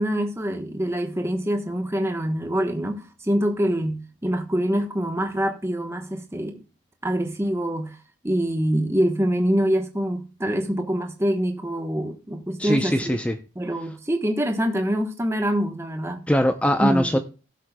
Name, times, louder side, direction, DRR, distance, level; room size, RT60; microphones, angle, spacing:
voice 1, 0.0-6.6 7.0-8.0 8.2-13.2 13.6-16.3 16.8-17.2, equal, 10° right, 1.0 m, -25 dB
voice 2, 12.6-13.4 16.3-17.2, equal, 5° left, 0.5 m, -21 dB
16.5 x 7.5 x 2.2 m
head